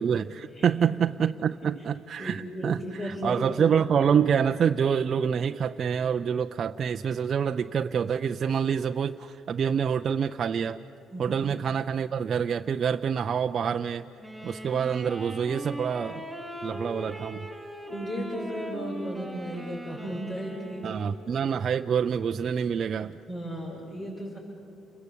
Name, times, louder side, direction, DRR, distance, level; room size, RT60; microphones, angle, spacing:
voice 1, 0.0-10.8 11.2-14.1 14.4-16.2 16.6-17.5 20.8-23.2, right 7 dB, 45° right, 6 dB, 0.5 m, -27 dB
voice 2, 2.2-3.8 11.1-11.4 17.9-21.0 23.3-24.4, equal, 35° left, -5 dB, 6.5 m, -35 dB
Wind instrument woodwind instrument, 14.2-21.4, equal, 5° right, 4.6 m, -40 dB
29.5 x 22.0 x 8.4 m, 2.8 s
cardioid pair, 120°, 0 cm